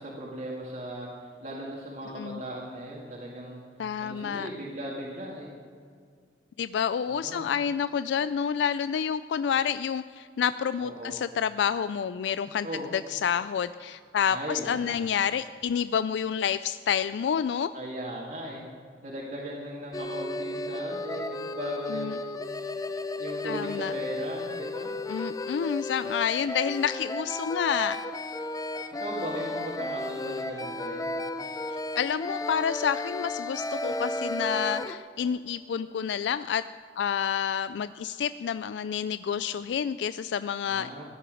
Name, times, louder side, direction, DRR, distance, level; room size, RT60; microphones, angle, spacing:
voice 1, 0.0-3.6 4.0-5.5 7.0-7.5 10.8-11.2 12.6-12.9 14.3-15.0 17.7-18.7 19.0-22.6 23.2-24.9 29.0-31.1 40.7-41.0, right 1 dB, 45° right, -5 dB, 2.1 m, -38 dB
voice 2, 3.8-4.5 6.6-12.7 12.9-17.7 21.9-22.2 23.4-23.9 25.1-28.0 32.0-36.6 37.0-40.9, left 7 dB, 80° left, 14 dB, 0.3 m, -29 dB
sound 1, 19.9-34.9, left 2 dB, 20° left, 0.6 m, -34 dB
15.5 x 10.0 x 6.3 m, 2.1 s
head